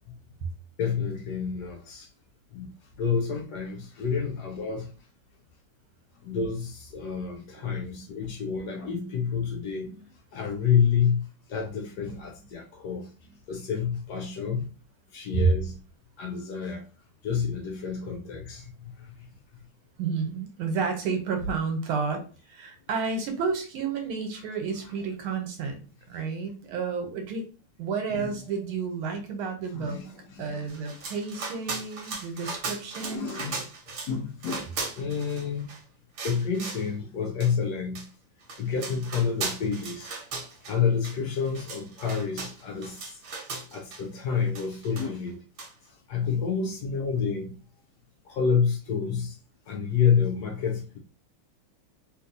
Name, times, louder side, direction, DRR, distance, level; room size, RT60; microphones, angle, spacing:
voice 1, 0.8-2.1 2.5-2.7 3.0-4.9 6.2-10.0 10.3-13.1 13.5-14.7 15.1-15.8 16.2-16.8 17.2-19.3 26.1-26.2 28.1-28.3 29.7-30.7 31.0-31.1 32.1-32.2 33.0-33.6 34.1-35.7 36.2-38.1 38.6-40.1 40.6-43.2 43.7-45.4 45.9-47.5 48.2-49.4 49.7-51.0, left 6 dB, 75° left, 0.9 m, -29 dB
voice 2, 20.0-25.8 26.1-27.4 27.8-30.0 30.4-33.4, right 5 dB, 80° right, 1.6 m, -30 dB
sound 1, 30.7-34.1 34.4-35.8 36.2-36.9 37.4-37.5 38.0-38.1 38.4-40.8 41.0-41.2 41.5-44.0 44.6-45.3 45.6-45.7, right 4 dB, 60° right, 1.2 m, -37 dB
3.1 x 3.1 x 2.6 m
omnidirectional pair, 2.3 m